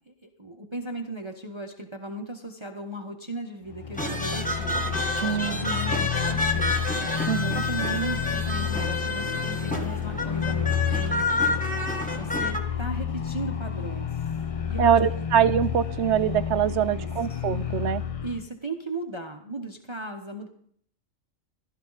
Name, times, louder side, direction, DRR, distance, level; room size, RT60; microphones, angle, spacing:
voice 1, 0.1-4.8 5.2-6.7 7.3-11.6 12.1-14.1 14.7-15.0 16.8-17.4 18.2-20.5, right 2 dB, 25° right, 3 dB, 1.1 m, -36 dB
sound 1, 3.7-18.5, left 8 dB, 35° left, 0.6 m, -30 dB
sound 2, 4.0-12.6, left 2 dB, 5° left, 1.5 m, -29 dB
voice 2, 5.2-5.6 7.3-7.6 14.8-18.0, right 9 dB, 60° right, 13 dB, 1.0 m, -23 dB
15.5 x 12.5 x 4.0 m, 0.62 s
omnidirectional pair, 1.4 m